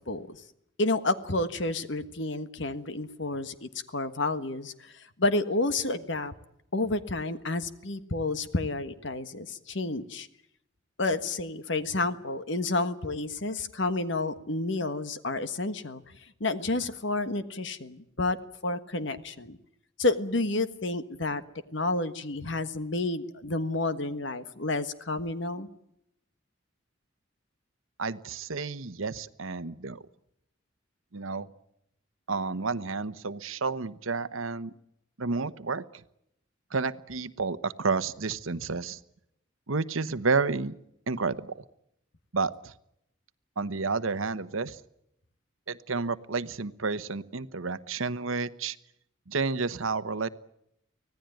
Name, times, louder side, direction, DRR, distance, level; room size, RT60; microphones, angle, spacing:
voice 1, 0.1-0.4 0.8-4.9 5.2-6.3 6.7-10.3 11.0-16.0 16.4-18.4 18.6-19.6 20.0-21.4 21.7-25.7, left 2 dB, 60° left, 11 dB, 1.5 m, -30 dB
voice 2, 28.0-30.0 31.1-31.5 32.3-34.7 35.2-35.8 36.7-39.0 39.7-40.7 41.1-41.6 42.3-42.7 43.6-44.8 45.7-48.8 49.3-50.3, right 4 dB, 85° right, 14 dB, 1.1 m, -30 dB
25.0 x 17.5 x 9.1 m, 0.79 s
head